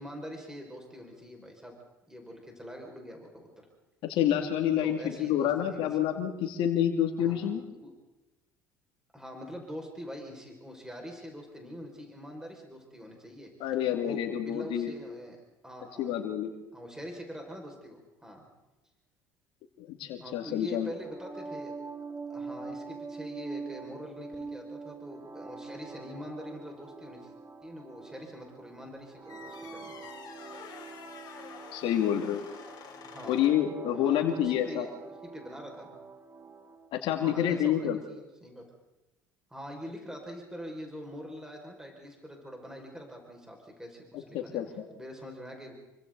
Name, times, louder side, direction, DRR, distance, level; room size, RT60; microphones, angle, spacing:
voice 1, 0.0-1.8 2.1-3.7 4.8-5.8 7.2-7.9 9.1-15.4 15.6-16.2 16.7-18.4 20.2-21.7 22.3-27.3 27.6-29.9 33.0-33.4 33.9-34.9 35.2-36.0 37.2-38.6 39.5-45.7, equal, 5° right, 1 dB, 5.7 m, -44 dB
voice 2, 4.1-7.6 13.6-14.9 16.0-16.5 19.8-20.9 31.7-32.5 33.3-34.9 36.9-38.0 44.3-44.8, left 10 dB, 60° left, 4 dB, 2.5 m, -28 dB
sound 1, 20.9-36.9, right 4 dB, 25° right, 2.4 m, -44 dB
sound 2, 29.3-33.7, left 6 dB, 45° left, 4.6 m, -48 dB
28.0 x 24.5 x 4.1 m, 1.1 s
hypercardioid pair, 60°, 10 cm